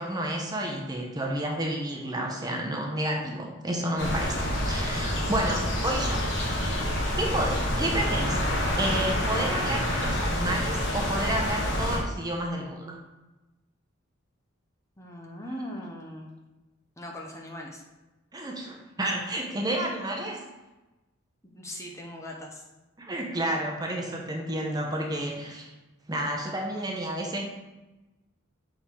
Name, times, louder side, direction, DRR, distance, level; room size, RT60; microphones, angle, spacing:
voice 1, 0.0-6.3 6.6-6.8 7.2-8.4 8.8-13.0 18.3-20.4 23.0-25.7 26.1-27.5, right 1 dB, 20° right, 1 dB, 0.8 m, -31 dB
sound 1, 4.0-12.0, left 1 dB, 60° left, 1.3 m, -27 dB
voice 2, 15.0-16.3 17.0-17.8 21.5-22.6, left 1 dB, 15° left, -1 dB, 0.7 m, -39 dB
6.4 x 3.7 x 4.4 m, 1.1 s
head